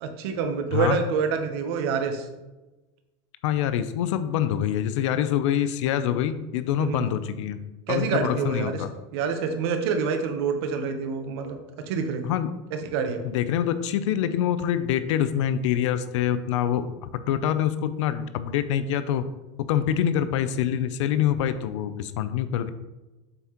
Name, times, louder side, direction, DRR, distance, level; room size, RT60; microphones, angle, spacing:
voice 1, 0.0-2.3 6.8-7.1 7.9-8.8 9.1-11.6 11.9-12.3 12.7-13.3, right 5 dB, 55° right, 6 dB, 1.0 m, -27 dB
voice 2, 3.4-7.6 7.9-8.9 12.2-12.5 13.3-19.2 19.7-22.7, left 10 dB, 70° left, 12 dB, 0.5 m, -25 dB
7.8 x 5.7 x 3.0 m, 1.1 s
supercardioid pair, 180°, 16 cm